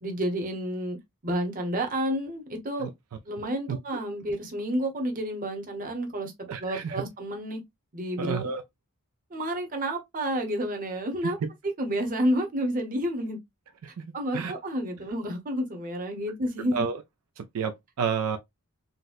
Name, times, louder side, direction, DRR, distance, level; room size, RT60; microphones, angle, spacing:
voice 1, 0.0-1.0 1.2-2.9 3.3-6.3 6.6-7.6 7.9-8.5 9.3-11.4 11.6-13.4 14.1-16.8, equal, 40° right, 0.9 m, -30 dB
voice 2, 6.5-7.0 8.2-8.6 14.0-14.1 14.3-14.5 16.7-17.0 17.4-18.4, right 6 dB, 75° right, 0.4 m, -30 dB
4.0 x 2.1 x 2.4 m
head